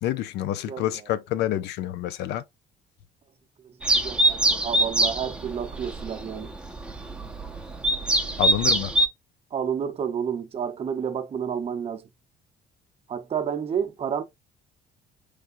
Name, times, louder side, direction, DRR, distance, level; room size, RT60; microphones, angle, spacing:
voice 1, 0.0-2.4 8.4-8.9, left 12 dB, 80° left, 0.6 m, -28 dB
sound 1, 3.8-9.1, right 1 dB, 5° right, 0.7 m, -24 dB
voice 2, 3.9-6.5 9.5-12.0 13.1-14.2, right 7 dB, 35° right, 0.8 m, -30 dB
4.7 x 3.4 x 2.5 m
cardioid pair, 110°, 17 cm